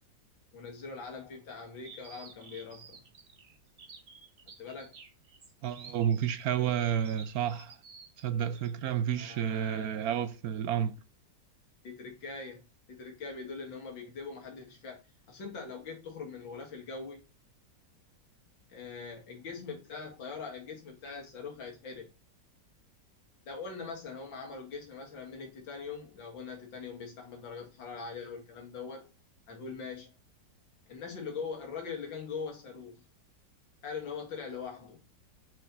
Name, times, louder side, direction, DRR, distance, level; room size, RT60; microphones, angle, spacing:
voice 1, 0.5-3.0 4.6-5.0 9.2-10.0 11.8-12.6 12.9-15.0 15.3-17.2 18.7-22.1 23.5-29.1 29.5-30.1 30.9-33.0 33.8-35.0, left 5 dB, 90° left, 2.7 m, -42 dB
sound 1, 1.8-8.9, right 5 dB, 45° right, 1.3 m, -52 dB
voice 2, 5.6-7.8 8.2-10.9, right 9 dB, 70° right, 0.9 m, -30 dB
6.5 x 4.5 x 4.0 m
omnidirectional pair, 2.0 m